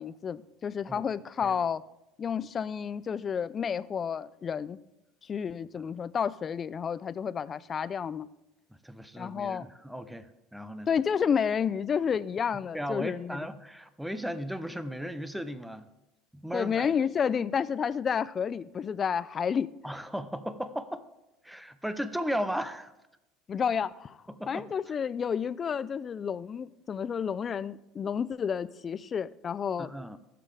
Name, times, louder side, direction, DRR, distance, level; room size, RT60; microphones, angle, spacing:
voice 1, 0.0-1.8 2.2-4.8 5.2-8.3 9.2-9.7 10.9-13.4 16.5-19.7 23.5-29.9, left 7 dB, 35° left, 0.4 m, -30 dB
voice 2, 8.8-10.9 12.7-15.9 16.3-16.9 19.8-21.0 21.4-22.9 24.3-24.7 29.8-30.2, equal, 5° right, 0.8 m, -36 dB
21.0 x 7.7 x 3.4 m
supercardioid pair, 100°, 0 cm